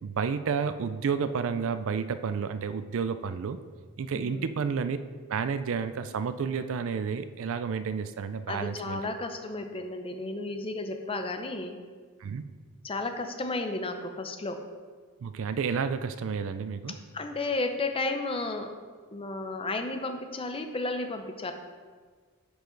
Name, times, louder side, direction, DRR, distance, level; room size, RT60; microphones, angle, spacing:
voice 1, 0.0-3.6 4.0-5.0 5.3-9.0 12.2-12.4 15.2-17.0, right 6 dB, 60° right, 12 dB, 0.4 m, -31 dB
voice 2, 4.1-4.5 8.5-11.8 12.8-14.6 17.1-18.8 19.1-21.5, left 2 dB, 25° left, 6 dB, 0.6 m, -33 dB
9.9 x 5.2 x 3.9 m, 1.5 s
head